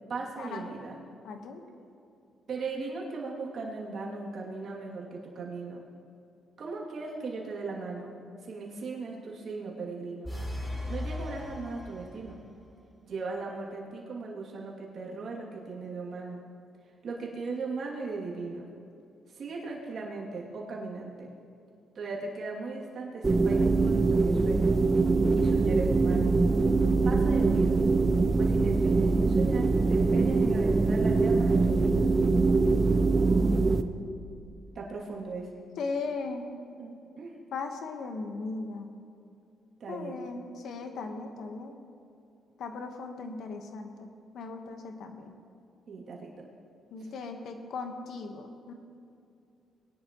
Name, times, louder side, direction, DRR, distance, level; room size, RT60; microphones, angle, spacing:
voice 1, 0.1-1.0 2.5-5.8 6.6-8.1 8.4-10.3 10.9-12.4 13.0-16.4 17.0-18.7 19.3-21.3 21.9-24.7 25.4-26.3 27.0-27.8 28.4-32.1 32.9-34.0 34.7-35.5 36.8-37.4 39.8-40.2 40.9-41.0 45.9-46.5 47.0-47.1, right 3 dB, 55° right, -3 dB, 2.7 m, -38 dB
voice 2, 1.2-1.6 33.1-34.0 35.8-36.5 37.5-38.9 39.9-41.7 42.6-45.3 46.9-48.7, left 4 dB, 70° left, 5 dB, 1.3 m, -38 dB
sound 1, 10.2-12.5, left 1 dB, 10° left, 3.3 m, -37 dB
sound 2, 23.2-33.8, right 3 dB, 25° right, 0.6 m, -23 dB
20.5 x 10.5 x 3.1 m, 2.6 s
cardioid pair, 90°, 0 cm